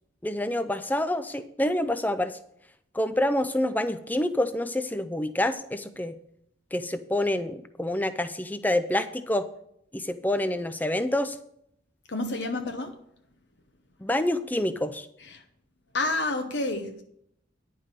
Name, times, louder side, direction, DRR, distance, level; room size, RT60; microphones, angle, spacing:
voice 1, 0.2-2.4 2.9-6.1 6.7-9.5 9.9-11.4 14.0-15.1, left 1 dB, 10° left, 0.5 m, -27 dB
voice 2, 12.1-13.0 15.2-15.4 15.9-17.0, left 2 dB, 60° left, 0.8 m, -29 dB
10.5 x 5.5 x 6.6 m
head